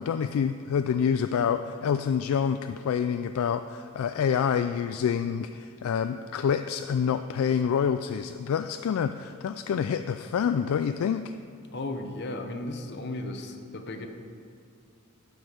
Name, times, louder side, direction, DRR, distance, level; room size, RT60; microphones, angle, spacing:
voice 1, 0.0-11.3, left 7 dB, 70° left, 9 dB, 0.3 m, -27 dB
voice 2, 11.7-14.1, left 2 dB, 50° left, 6 dB, 0.8 m, -35 dB
11.5 x 6.3 x 5.1 m, 2.4 s
head